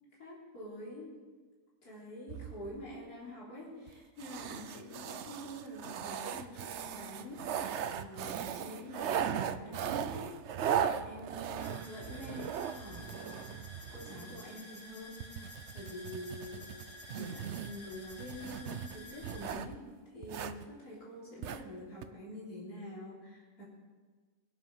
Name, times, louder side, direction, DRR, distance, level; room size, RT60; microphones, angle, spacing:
voice 1, 0.2-1.1 1.8-10.3 10.7-13.6 13.9-16.7 17.1-19.9 20.1-23.6, left 1 dB, 80° left, -6 dB, 4.0 m, -46 dB
sound 1, 2.3-3.0 3.9-4.0 4.2-14.4 15.2-19.8 20.2-20.7 21.4-21.6 22.0-22.1, right 8 dB, 60° right, 0.8 m, -38 dB
sound 2, 11.6-19.6, left 2 dB, 20° left, 1.2 m, -51 dB
21.5 x 8.0 x 5.5 m, 1.4 s
omnidirectional pair, 1.6 m